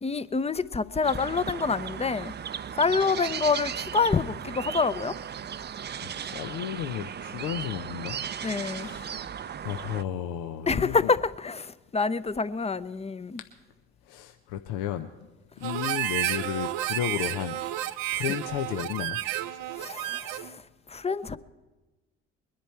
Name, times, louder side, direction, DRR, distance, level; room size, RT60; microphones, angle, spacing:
voice 1, 0.0-2.3 2.8-5.1 8.4-8.9 10.7-13.4 19.8-20.6 20.9-21.4, left 4 dB, 20° left, 0.6 m, -27 dB
sound 1, 1.0-10.0, right 8 dB, 30° right, 0.5 m, -36 dB
voice 2, 6.0-8.2 8.7-9.3 9.6-11.1 14.1-15.1 15.6-17.6 18.1-19.2, left 10 dB, 75° left, 0.7 m, -33 dB
Harmonica, 15.6-20.5, right 14 dB, 75° right, 0.6 m, -31 dB
21.0 x 10.5 x 4.4 m
hypercardioid pair, 55°, 34 cm